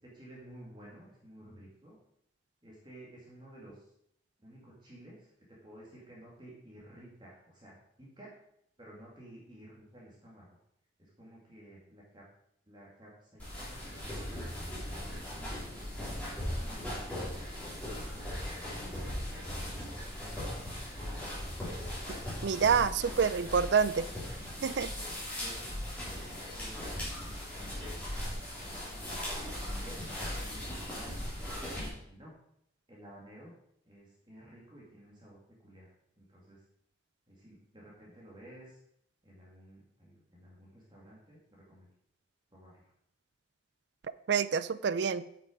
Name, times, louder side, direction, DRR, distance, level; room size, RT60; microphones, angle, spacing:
voice 1, 0.0-2.0 2.6-3.9 4.4-5.3 5.6-8.3 8.8-10.6 11.0-12.2 12.7-14.5 14.9-16.3 16.6-17.2 18.0-18.7 19.5-20.6 21.2-21.5 24.7-24.9 25.4-29.3 29.6-31.7 32.1-32.4 32.9-33.5 33.8-35.9 36.2-36.6 37.3-38.8 39.2-41.4 41.7-41.9 42.5-42.8, right 1 dB, 25° right, -4 dB, 2.2 m, -53 dB
sound 1, 13.4-31.9, left 1 dB, 5° left, 3.3 m, -39 dB
voice 2, 22.4-24.1 24.6-24.9 44.3-45.2, right 6 dB, 65° right, 16 dB, 0.4 m, -27 dB
8.9 x 6.0 x 5.1 m, 0.73 s
head